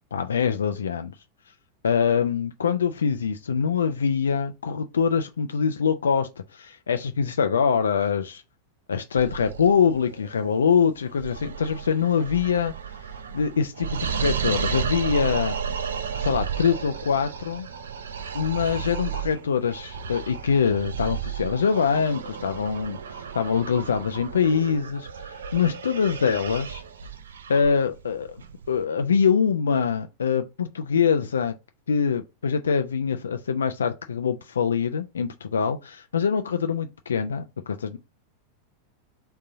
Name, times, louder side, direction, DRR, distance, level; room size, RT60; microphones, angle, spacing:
voice 1, 0.1-1.1 1.8-8.4 8.9-12.7 13.3-15.6 16.2-17.7 18.3-26.8 27.5-28.4 28.7-31.5 31.9-38.0, left 6 dB, 70° left, 0.3 m, -24 dB
sound 1, 9.2-28.8, right 7 dB, 65° right, 0.5 m, -33 dB
3.9 x 2.7 x 3.9 m
figure-of-eight pair, 90°, 0 cm